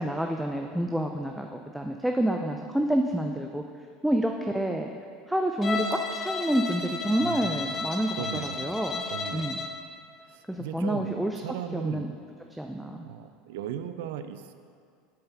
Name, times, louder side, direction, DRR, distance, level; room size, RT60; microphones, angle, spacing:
voice 1, 0.0-3.6 4.0-4.9 5.3-9.0 9.3-9.6 10.5-11.4 11.7-12.1 12.5-13.0, right 1 dB, 5° right, 3 dB, 0.5 m, -28 dB
Bowed string instrument, 5.6-9.8, left 4 dB, 30° left, 0.7 m, -33 dB
voice 2, 7.2-7.5 8.2-8.7 9.1-9.5 10.2-12.1 13.0-14.5, right 9 dB, 75° right, 10 dB, 0.4 m, -37 dB
7.6 x 5.5 x 5.9 m, 2.2 s
hypercardioid pair, 85°, 0 cm